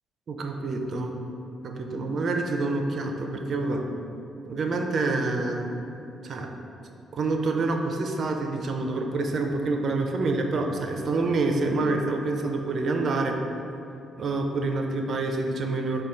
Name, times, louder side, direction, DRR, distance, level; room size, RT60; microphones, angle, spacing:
voice 1, 0.3-1.2 1.6-3.8 4.5-5.7 6.2-6.5 7.1-13.4 14.2-16.0, right 3 dB, 55° right, 3 dB, 0.4 m, -27 dB
5.0 x 2.3 x 4.3 m, 2.8 s
cardioid pair, 90°, 0 cm